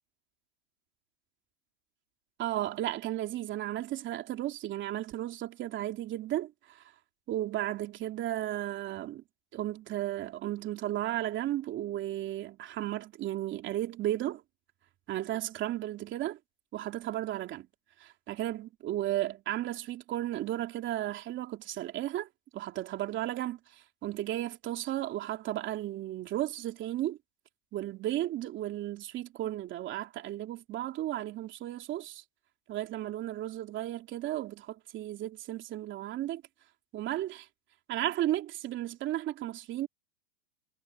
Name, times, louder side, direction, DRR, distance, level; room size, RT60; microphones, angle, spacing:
voice 1, 2.4-6.8 7.3-9.2 9.5-14.4 15.1-16.4 16.7-17.7 18.0-27.2 27.7-32.2 32.7-36.4 36.9-37.5 37.9-39.9, right 13 dB, 30° right, 3.0 m, -34 dB
supercardioid pair, 140°, 37 cm